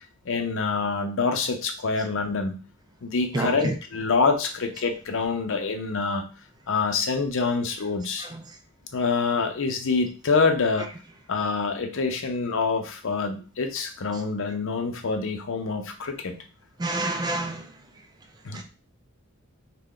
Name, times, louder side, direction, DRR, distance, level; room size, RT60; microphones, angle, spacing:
voice 1, 0.2-2.6 3.0-6.2 6.7-8.3 8.9-10.9 11.3-16.3 18.4-18.6, left 4 dB, 65° left, 5 dB, 0.6 m, -26 dB
voice 2, 3.3-3.8 8.3-8.4 10.8-10.9 16.8-17.7 18.5-18.6, right 2 dB, 20° right, 5 dB, 0.3 m, -28 dB
3.3 x 2.2 x 3.7 m, 0.37 s
head